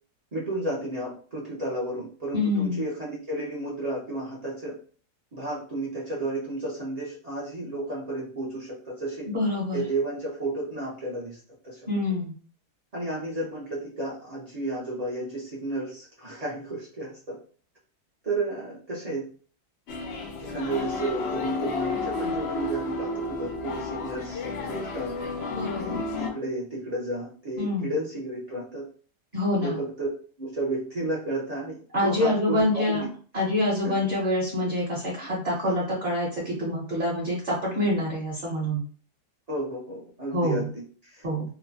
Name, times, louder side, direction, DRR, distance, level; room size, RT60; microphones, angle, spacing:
voice 1, 0.3-4.8 5.3-9.3 9.7-11.4 11.6-11.8 12.9-17.4 18.2-19.3 20.4-25.2 25.8-28.9 29.6-30.1 30.4-33.1 33.8-33.9 39.5-41.5, right 2 dB, 60° right, -5 dB, 0.4 m, -32 dB
voice 2, 2.3-2.8 9.3-9.8 11.9-12.4 25.5-26.0 27.6-27.9 29.3-29.8 31.9-33.0 33.3-38.8 40.3-40.7 41.2-41.5, left 1 dB, 40° right, -6 dB, 0.8 m, -26 dB
sound 1, 19.9-26.3, left 3 dB, 80° left, 0.5 m, -32 dB
2.9 x 2.1 x 2.6 m, 0.42 s
omnidirectional pair, 1.7 m